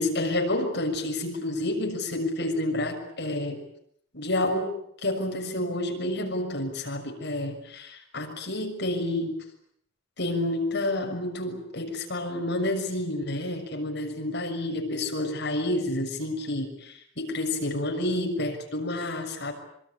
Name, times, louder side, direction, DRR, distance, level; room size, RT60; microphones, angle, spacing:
voice 1, 0.0-3.6 4.1-9.4 10.2-19.5, left 1 dB, 55° left, 3 dB, 6.6 m, -29 dB
26.5 x 23.5 x 8.7 m, 0.70 s
head